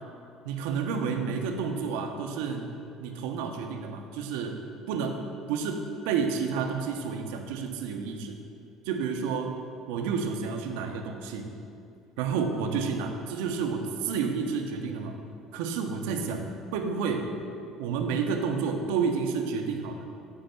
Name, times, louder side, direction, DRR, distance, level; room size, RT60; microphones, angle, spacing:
voice 1, 0.4-2.7 3.0-4.6 4.9-5.2 5.5-8.3 8.9-9.5 9.9-11.5 12.2-15.2 15.5-16.4 16.7-17.3 17.8-20.0, right 5 dB, 75° right, 4 dB, 0.7 m, -30 dB
9.3 x 3.5 x 5.6 m, 2.5 s
hypercardioid pair, 65°, 0 cm